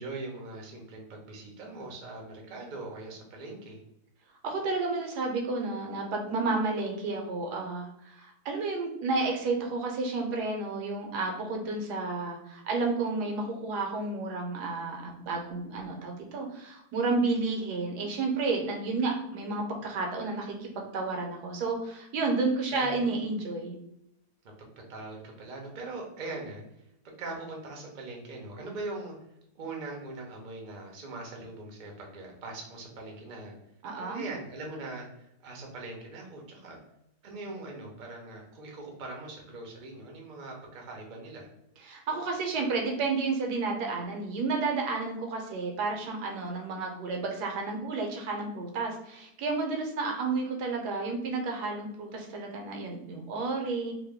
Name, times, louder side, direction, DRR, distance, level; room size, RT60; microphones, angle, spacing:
voice 1, 0.0-3.8 22.7-23.2 24.6-26.6 27.0-29.1 29.5-33.6 33.9-36.8 37.2-41.5, right 2 dB, 45° right, 0 dB, 0.6 m, -41 dB
voice 2, 4.4-23.8 33.8-34.2 41.8-53.9, right 3 dB, 80° right, 2 dB, 1.3 m, -31 dB
2.9 x 2.2 x 3.4 m, 0.80 s
omnidirectional pair, 1.7 m